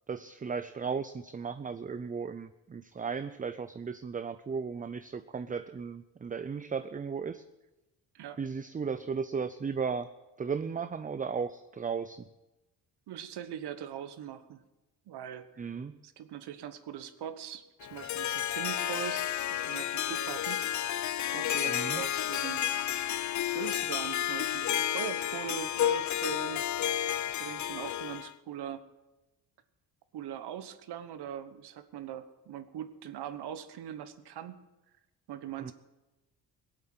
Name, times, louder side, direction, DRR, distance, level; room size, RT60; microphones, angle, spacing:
voice 1, 0.1-7.4 8.4-10.1 10.4-12.3 15.6-16.0 21.6-22.0 35.6-35.7, right 5 dB, 20° right, 12 dB, 0.5 m, -35 dB
voice 2, 13.1-14.6 15.1-15.7 16.0-19.2 19.5-20.6 21.3-22.6 23.4-26.6 27.3-28.8 30.1-34.6 35.3-35.7, right 10 dB, 70° right, 11 dB, 1.2 m, -41 dB
Harp, 17.8-28.3, left 11 dB, 45° left, 0.6 m, -31 dB
18.0 x 8.2 x 7.7 m, 1.0 s
cardioid pair, 80°, 41 cm